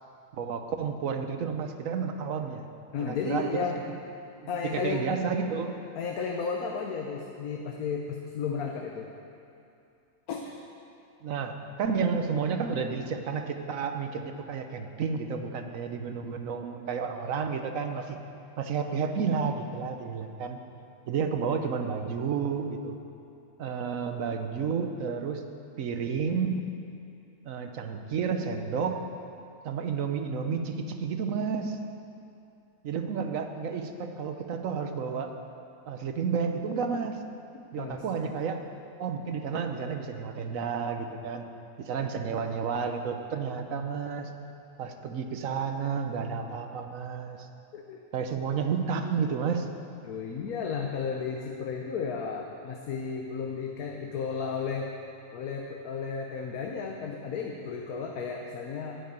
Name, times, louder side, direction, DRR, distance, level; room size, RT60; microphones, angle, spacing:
voice 1, 0.3-2.7 3.0-3.7 4.4-5.8 11.2-18.2 18.6-20.6 21.1-23.0 23.6-25.4 25.8-26.7 27.4-29.0 29.6-31.8 32.8-35.3 35.9-37.2 37.7-38.6 39.0-41.4 41.8-44.3 44.8-47.5 48.1-49.7, right 6 dB, 65° right, 6 dB, 1.2 m, -31 dB
voice 2, 2.9-3.8 4.5-5.1 6.0-9.1 10.3-10.5 37.8-38.0 47.7-48.0 48.5-48.6 50.0-54.9 55.3-59.0, left 5 dB, 85° left, 1 dB, 1.4 m, -33 dB
12.5 x 6.7 x 9.3 m, 2.6 s
omnidirectional pair, 1.5 m